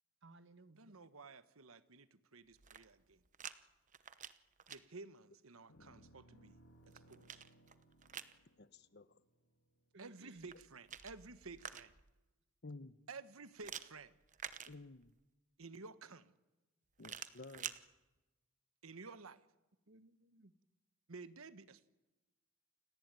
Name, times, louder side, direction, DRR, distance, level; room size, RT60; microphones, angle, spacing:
voice 1, 0.2-1.0 9.9-10.5 19.9-20.5, right 2 dB, 60° right, 1.5 m, -60 dB
voice 2, 0.8-3.2 4.7-6.6 6.9-7.4 10.0-11.9 13.1-14.2 15.6-16.3 18.8-19.4 21.1-21.9, right 4 dB, 90° right, 1.3 m, -53 dB
sound 1, 2.5-3.6 3.9-4.8 6.5-8.4 10.4-12.1 13.6-15.2 17.0-17.8, right 8 dB, 35° right, 1.0 m, -49 dB
sound 2, 5.7-10.1, right 1 dB, 75° left, 3.2 m, -65 dB
voice 3, 8.6-9.2 12.6-13.0 14.7-15.1 17.0-17.7, left 2 dB, 50° left, 1.0 m, -53 dB
29.0 x 19.0 x 9.1 m
head